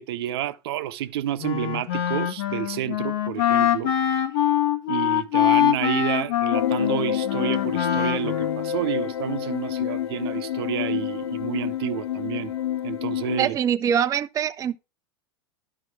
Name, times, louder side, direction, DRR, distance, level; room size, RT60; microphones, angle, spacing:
voice 1, 0.0-3.9 4.9-12.5 12.8-13.6, right 13 dB, 70° right, 0.8 m, -30 dB
Wind instrument woodwind instrument, 1.4-8.7, left 11 dB, 70° left, 1.5 m, -24 dB
sound 1, 6.5-13.5, left 10 dB, 85° left, 0.6 m, -28 dB
voice 2, 13.4-14.8, right 9 dB, 25° right, 0.5 m, -23 dB
11.0 x 5.5 x 4.8 m
hypercardioid pair, 105°, 13 cm